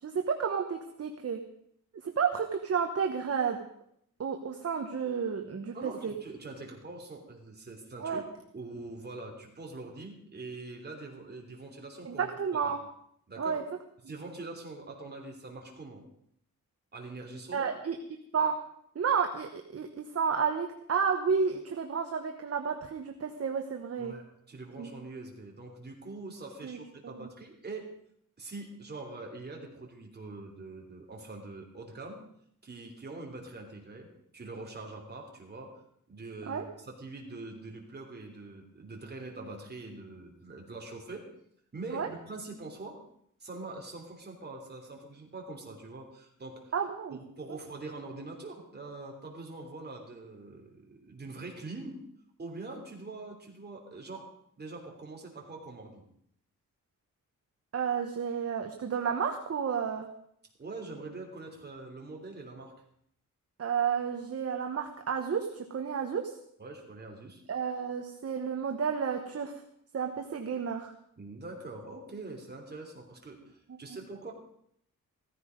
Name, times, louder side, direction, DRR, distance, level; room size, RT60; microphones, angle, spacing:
voice 1, 0.0-1.4 2.0-3.6 4.2-6.1 8.0-8.2 12.0-12.8 13.4-13.6 17.5-18.0 18.3-18.6 18.9-24.1 24.8-24.9 26.6-26.8 27.0-27.3 36.5-36.6 41.9-42.1 46.7-47.2 57.7-60.1 63.6-66.3 67.5-69.5 69.9-70.9, right 6 dB, 45° right, 4 dB, 1.2 m, -31 dB
voice 2, 5.7-8.2 8.5-12.3 13.3-13.6 14.1-16.0 16.9-17.7 24.0-27.9 28.4-32.2 32.6-35.8 36.1-41.3 41.7-43.0 43.4-46.7 47.1-52.0 52.4-54.3 54.6-56.0 60.6-62.7 66.6-67.4 71.2-74.3, right 3 dB, 30° right, 0 dB, 3.3 m, -44 dB
16.0 x 14.0 x 5.2 m, 0.69 s
wide cardioid pair, 170°, 33 cm